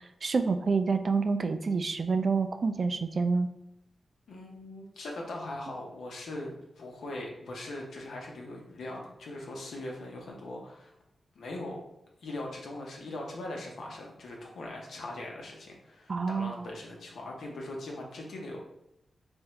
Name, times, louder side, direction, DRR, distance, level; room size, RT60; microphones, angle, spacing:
voice 1, 0.2-3.5 16.1-16.6, right 4 dB, 55° right, 8 dB, 0.4 m, -28 dB
voice 2, 4.3-10.9 11.3-11.8 12.2-18.6, left 1 dB, 90° left, -1 dB, 0.9 m, -40 dB
3.5 x 3.5 x 3.1 m, 0.83 s
cardioid pair, 80°, 0 cm